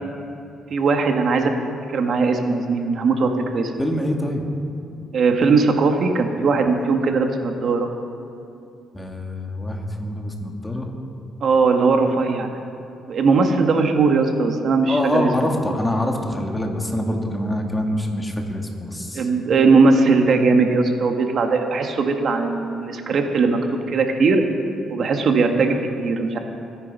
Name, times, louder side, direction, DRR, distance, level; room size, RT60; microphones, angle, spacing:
voice 1, 0.7-1.5 1.9-3.7 5.1-7.9 11.4-12.5 13.1-15.6 19.1-23.6 23.9-24.4 24.9-26.4, right 4 dB, 55° right, 4 dB, 1.5 m, -19 dB
voice 2, 3.8-4.4 8.9-10.9 14.9-19.3, left 1 dB, 10° left, 2 dB, 2.2 m, -25 dB
24.0 x 9.7 x 5.5 m, 2.7 s
cardioid pair, 90°, 0 cm